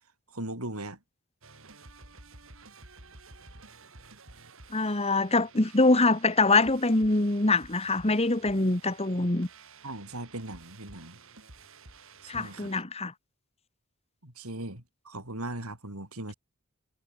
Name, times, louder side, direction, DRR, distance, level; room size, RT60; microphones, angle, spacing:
voice 1, 0.3-1.0 9.8-11.2 12.2-12.7 14.2-16.3, right 1 dB, 85° right, 8.0 m, -38 dB
sound 1, 1.4-12.8, right 3 dB, 65° right, 8.0 m, -52 dB
voice 2, 4.7-9.5 12.3-13.1, left 2 dB, 30° left, 1.8 m, -24 dB
head